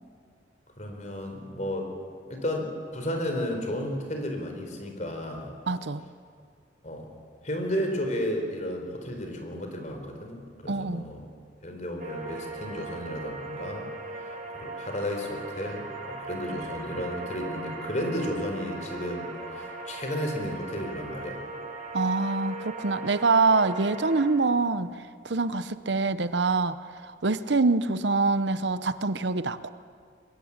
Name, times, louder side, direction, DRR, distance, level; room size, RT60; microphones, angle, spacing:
voice 1, 0.8-1.9 2.3-5.5 6.8-7.1 7.4-11.3 11.6-13.9 14.5-21.4, left 1 dB, 40° left, 4 dB, 4.3 m, -33 dB
voice 2, 5.7-6.0 10.7-11.1 21.9-24.9 25.2-26.8 27.0-29.7, right 3 dB, 65° right, 13 dB, 0.9 m, -25 dB
sound 1, 12.0-24.3, right 3 dB, 45° right, 3.6 m, -39 dB
23.5 x 22.0 x 8.8 m, 2.1 s
head